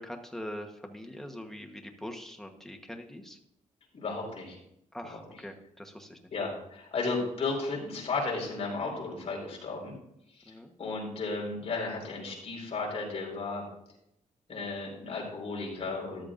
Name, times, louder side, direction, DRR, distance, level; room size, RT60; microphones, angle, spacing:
voice 1, 0.0-3.4 4.9-6.2 10.5-10.7, equal, 5° left, 3 dB, 1.2 m, -43 dB
voice 2, 3.9-4.6 5.0-5.2 6.3-9.9 10.4-10.5 10.8-13.6 14.5-16.2, left 3 dB, 50° left, -2 dB, 4.8 m, -34 dB
13.5 x 11.5 x 2.6 m, 0.77 s
wide cardioid pair, 160°, 13 cm